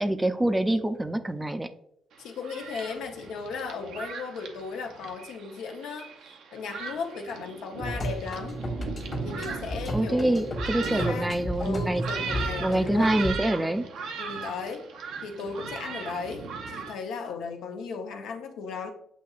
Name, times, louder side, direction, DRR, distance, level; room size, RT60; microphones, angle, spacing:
voice 1, 0.0-1.7 9.9-12.0 12.6-13.8, right 1 dB, 10° right, 9 dB, 0.4 m, -25 dB
Thunderstorm, 2.1-16.9, right 5 dB, 80° right, 0.6 m, -38 dB
voice 2, 2.2-6.1 6.5-8.6 9.2-10.5 10.8-11.3 11.6-13.2 14.2-14.9 15.2-18.9, left 5 dB, 85° left, 3 dB, 0.7 m, -36 dB
sound 1, 7.8-13.4, equal, 40° left, 1.2 m, -33 dB
8.1 x 2.8 x 2.4 m, 0.70 s
cardioid pair, 90°, 0 cm